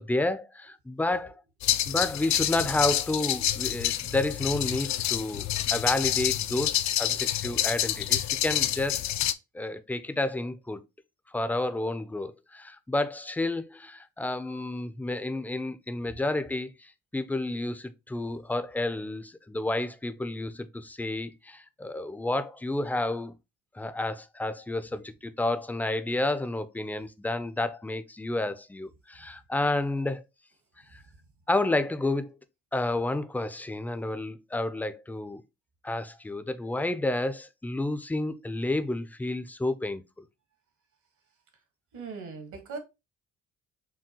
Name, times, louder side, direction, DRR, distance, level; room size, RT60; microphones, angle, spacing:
voice 1, 0.0-1.3 1.9-9.0 9.5-10.8 11.3-23.3 23.7-30.2 30.9-31.0 31.5-32.4 32.7-35.4 35.8-40.0, left 2 dB, 5° left, 0.4 m, -30 dB
sound 1, 1.6-9.3, left 12 dB, 65° left, 0.4 m, -28 dB
voice 2, 7.0-7.7 30.9-31.0 41.9-42.8, right 4 dB, 75° right, 1.6 m, -42 dB
5.9 x 2.3 x 2.9 m
cardioid pair, 90°, 30 cm